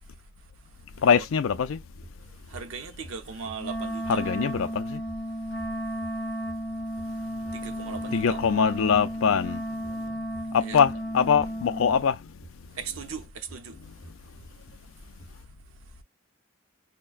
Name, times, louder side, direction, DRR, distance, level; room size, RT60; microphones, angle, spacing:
voice 1, 1.0-1.8 4.1-5.0 7.7-7.8 8.1-9.6 10.0-10.1 10.5-12.3, left 6 dB, 75° left, 0.4 m, -23 dB
sound 1, 1.5-13.8 14.0-14.7 15.1-15.3, equal, 15° left, 1.0 m, -49 dB
voice 2, 2.5-4.3 7.5-8.4 10.6-10.8 12.8-13.8, right 5 dB, 80° right, 0.7 m, -38 dB
Wind instrument woodwind instrument, 3.6-12.0, equal, 60° left, 0.8 m, -33 dB
5.3 x 2.1 x 2.4 m
head